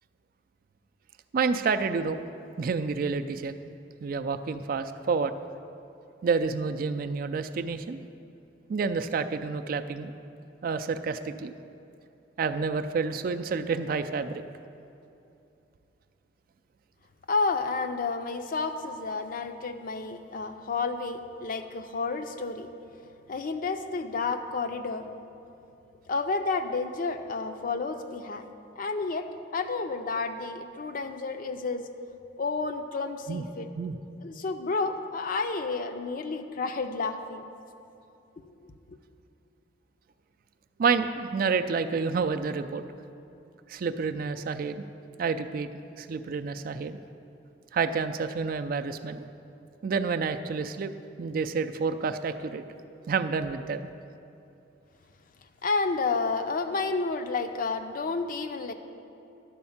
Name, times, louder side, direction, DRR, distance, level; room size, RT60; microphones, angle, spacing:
voice 1, 1.3-2.2 2.6-3.5 4.0-5.3 6.2-8.0 8.7-10.1 10.6-11.5 12.4-14.4 33.3-33.4 33.7-34.0 40.8-42.8 43.7-44.8 45.2-45.7 46.0-47.0 47.7-49.3 49.8-50.9 51.2-52.6 53.1-53.9, right 5 dB, 55° right, 9 dB, 0.3 m, -29 dB
voice 2, 17.3-22.7 23.3-25.1 26.1-28.5 28.8-31.9 32.4-33.7 34.2-37.4 38.6-39.0 55.6-58.7, left 4 dB, 50° left, 8 dB, 0.5 m, -31 dB
11.0 x 4.3 x 7.1 m, 2.8 s
head